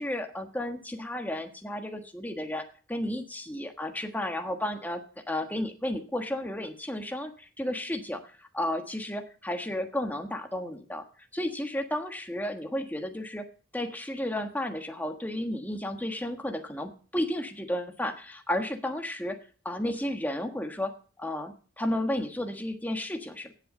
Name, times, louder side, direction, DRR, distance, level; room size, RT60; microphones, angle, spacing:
voice 1, 0.0-11.0 11.3-13.5 13.7-19.4 19.6-23.5, left 1 dB, 10° left, 5 dB, 1.4 m, -33 dB
17.0 x 7.9 x 5.4 m, 0.40 s
head